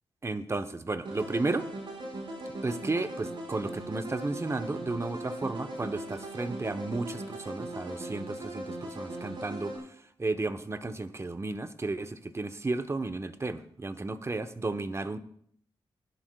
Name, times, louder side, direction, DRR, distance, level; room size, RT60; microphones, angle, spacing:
voice 1, 0.2-1.7 2.6-9.9 10.2-15.2, right 3 dB, 30° right, 10 dB, 0.9 m, -33 dB
sound 1, 1.0-9.8, right 1 dB, 55° right, 5.0 m, -39 dB
18.5 x 10.5 x 2.3 m, 0.66 s
cardioid pair, 60°, 10 cm